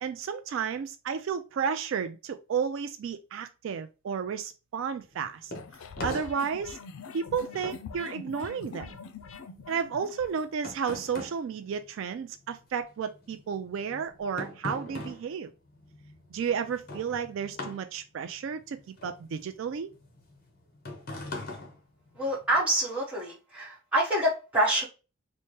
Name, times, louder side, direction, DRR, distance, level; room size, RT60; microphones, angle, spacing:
voice 1, 0.0-5.5 6.0-6.8 7.1-9.0 9.7-15.5 16.3-19.9, right 6 dB, 65° right, 0.3 m, -32 dB
sound 1, 5.0-12.7 12.9-22.6, left 1 dB, 45° left, 0.9 m, -42 dB
sound 2, 5.5-10.5, left 5 dB, 75° left, 0.4 m, -43 dB
voice 2, 22.2-24.8, right 1 dB, 5° right, 1.1 m, -26 dB
4.4 x 2.1 x 3.1 m
head